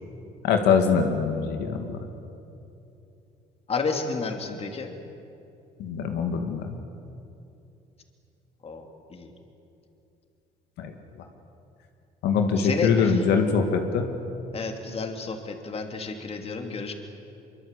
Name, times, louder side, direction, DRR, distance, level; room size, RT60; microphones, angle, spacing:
voice 1, 0.4-2.0 5.8-6.8 10.8-10.9 12.2-14.1, left 5 dB, 80° left, 4 dB, 2.1 m, -23 dB
voice 2, 3.7-4.9 8.6-8.8 9.1-9.3 12.6-13.2 14.5-16.9, left 4 dB, 35° left, 4 dB, 3.0 m, -31 dB
24.0 x 23.5 x 8.4 m, 2.8 s
cardioid pair, 110°, 17 cm